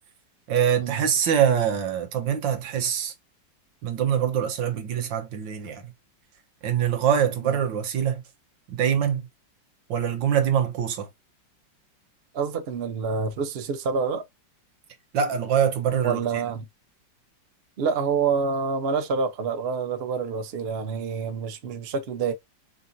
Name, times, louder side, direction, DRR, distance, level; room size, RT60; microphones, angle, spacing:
voice 1, 0.5-3.1 3.8-5.9 6.6-8.2 8.7-9.3 9.9-11.1 15.1-16.2, right 8 dB, 75° right, 1.6 m, -24 dB
voice 2, 12.3-14.2 16.0-16.7 17.8-22.3, right 5 dB, 55° right, 0.7 m, -27 dB
3.9 x 3.8 x 2.6 m
omnidirectional pair, 2.0 m